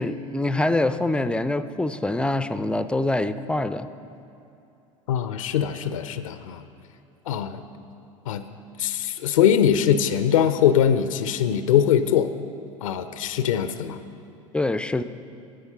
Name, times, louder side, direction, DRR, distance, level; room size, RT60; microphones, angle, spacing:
voice 1, 0.0-3.9 14.5-15.0, left 2 dB, 5° left, 12 dB, 0.3 m, -25 dB
voice 2, 5.1-6.6 7.3-7.6 8.3-8.5 8.8-12.3 12.8-14.0, left 9 dB, 75° left, 12 dB, 0.4 m, -22 dB
10.0 x 8.1 x 5.4 m, 2.8 s
hypercardioid pair, 75°, 17 cm